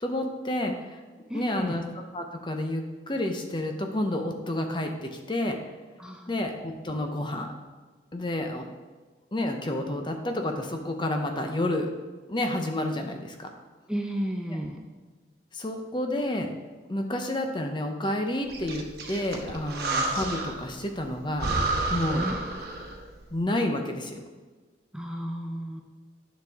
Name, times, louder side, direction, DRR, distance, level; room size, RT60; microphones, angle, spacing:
voice 1, 0.0-1.0 1.3-1.8 2.1-5.6 6.3-7.5 8.1-8.7 9.3-11.9 12.3-13.5 15.5-16.5 16.9-21.5 21.9-22.3 23.3-24.2, left 1 dB, 25° left, 4 dB, 0.7 m, -30 dB
voice 2, 1.3-1.8 6.0-6.3 13.9-14.8 22.1-22.4 24.9-25.8, equal, 5° right, 1 dB, 0.5 m, -33 dB
Breathing, 18.5-20.7 21.0-21.1 21.4-23.1, right 2 dB, 60° right, 1.1 m, -30 dB
9.5 x 6.1 x 3.6 m, 1.4 s
head